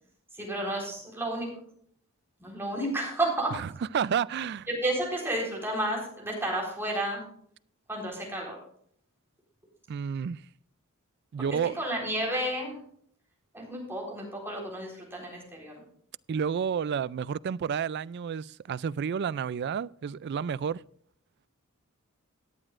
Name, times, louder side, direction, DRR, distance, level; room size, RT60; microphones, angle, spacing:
voice 1, 0.3-1.5 2.4-3.5 4.7-7.2 7.9-8.6 11.8-12.8 13.5-15.7, right 1 dB, 10° right, 4.0 m, -31 dB
voice 2, 3.9-4.7 9.9-10.4 11.3-11.8 16.3-20.8, right 7 dB, 50° right, 0.3 m, -30 dB
17.5 x 10.0 x 2.5 m
head